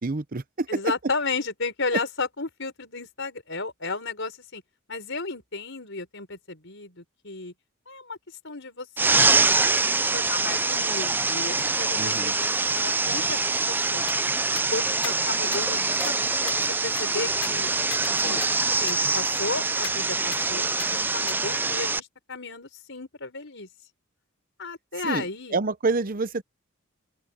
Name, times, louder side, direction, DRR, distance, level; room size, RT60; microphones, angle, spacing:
voice 1, 0.0-0.7 12.0-12.3 25.0-25.3 25.5-26.4, right 3 dB, 40° right, 0.8 m, -27 dB
voice 2, 0.7-4.6 4.9-7.5 7.9-8.2 8.4-9.8 10.1-14.0 14.4-17.7 18.2-18.4 18.8-20.7 20.9-23.7 24.6-25.6, left 3 dB, 60° left, 5.8 m, -33 dB
sound 1, 9.0-22.0, right 3 dB, 10° right, 0.4 m, -24 dB
sound 2, 14.1-14.2 14.6-14.7 15.0-15.2 15.5-15.6 16.0-16.2 16.5-18.1 18.4-18.5 18.9-19.0 19.4-19.5 19.8-20.0 20.3-20.4 20.8-20.9 21.3-21.4, left 11 dB, 90° left, 6.6 m, -39 dB
open air
head